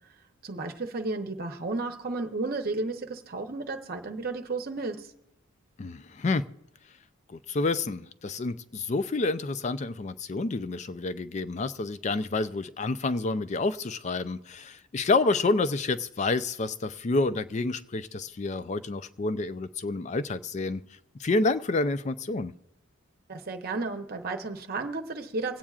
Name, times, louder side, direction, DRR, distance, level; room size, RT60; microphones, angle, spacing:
voice 1, 0.4-5.1 23.3-25.6, right 3 dB, 50° right, 0.8 m, -33 dB
voice 2, 5.8-6.4 7.3-20.8 21.2-22.5, left 3 dB, 35° left, 0.4 m, -29 dB
25.0 x 8.7 x 2.4 m
head